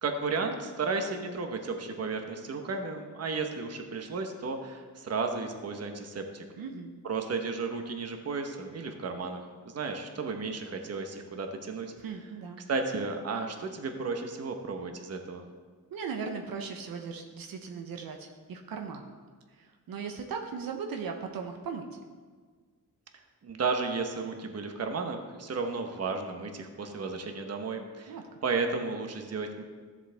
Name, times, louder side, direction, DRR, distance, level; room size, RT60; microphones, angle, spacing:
voice 1, 0.0-6.4 7.0-11.9 12.7-15.5 23.4-28.2 28.4-29.6, right 4 dB, 45° right, 4 dB, 1.1 m, -33 dB
voice 2, 6.6-6.9 12.0-12.6 15.9-19.2 19.5-21.9 28.1-28.3, right 5 dB, 80° right, 3 dB, 0.9 m, -38 dB
13.5 x 7.3 x 3.5 m, 1.5 s
cardioid pair, 115°, 34 cm